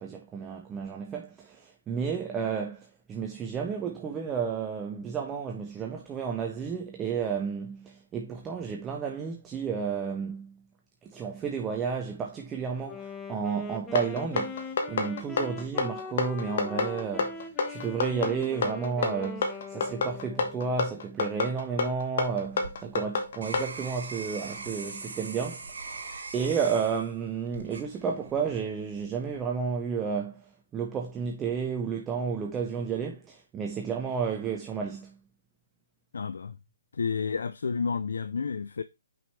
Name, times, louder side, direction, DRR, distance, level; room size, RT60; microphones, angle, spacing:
voice 1, 0.0-10.6 11.0-26.0 26.3-30.4 30.7-35.2, right 6 dB, 15° right, 0.7 m, -32 dB
Wind instrument woodwind instrument, 12.8-20.9, left 5 dB, 15° left, 0.8 m, -41 dB
sound 1, 14.0-23.7, left 4 dB, 55° left, 1.5 m, -28 dB
sound 2, 22.3-28.5 29.0-29.5, right 3 dB, 70° right, 2.9 m, -41 dB
voice 2, 36.1-36.6 36.9-38.8, left 5 dB, 75° left, 0.4 m, -30 dB
6.0 x 5.1 x 3.2 m
hypercardioid pair, 150°, 0 cm